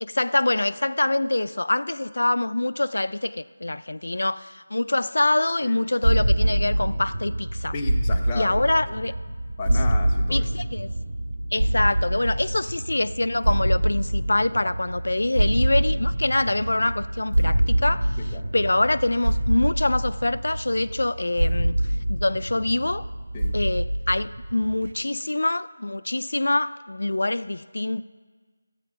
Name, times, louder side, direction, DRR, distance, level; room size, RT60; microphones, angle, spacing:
voice 1, 0.0-7.7 8.4-9.1 10.3-10.9 11.5-21.8 22.1-23.1 23.5-28.0, left 2 dB, 80° left, 15 dB, 0.3 m, -25 dB
sound 1, 6.0-24.9, right 1 dB, 55° right, 0.8 m, -25 dB
voice 2, 7.7-8.6 9.6-10.4 14.5-14.7 18.2-18.5 23.3-23.6, left 4 dB, 10° left, 0 dB, 0.5 m, -34 dB
14.0 x 8.2 x 5.7 m, 1.5 s
figure-of-eight pair, 180°, 0 cm